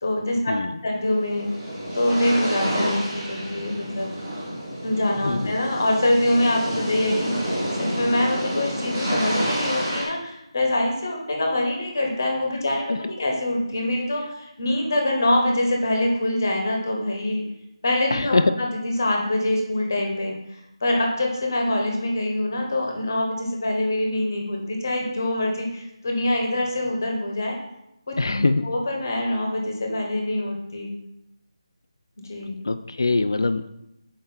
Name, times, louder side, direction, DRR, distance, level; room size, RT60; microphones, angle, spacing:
voice 1, 0.0-0.5 0.8-1.5 1.9-4.1 4.8-17.4 17.8-20.4 20.8-27.6 28.1-28.2 28.6-30.9 32.2-32.6, left 1 dB, 35° left, 1 dB, 1.0 m, -24 dB
sound 1, 1.0-10.0, equal, 10° right, 1.0 m, -29 dB
voice 2, 18.1-18.5 28.2-28.7 32.6-33.7, left 3 dB, 50° left, 10 dB, 0.3 m, -22 dB
5.6 x 4.7 x 4.4 m, 0.84 s
figure-of-eight pair, 175°, 3 cm